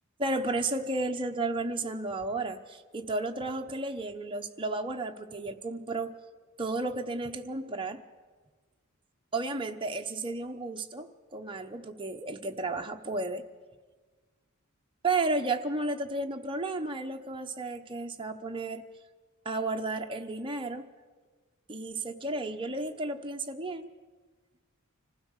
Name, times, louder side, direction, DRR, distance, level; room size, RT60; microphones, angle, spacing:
voice 1, 0.2-6.1 6.6-8.0 9.3-13.4 15.0-18.8 19.4-20.9 21.7-23.9, right 2 dB, 25° right, 4 dB, 0.9 m, -33 dB
25.5 x 16.0 x 6.5 m, 1.4 s
head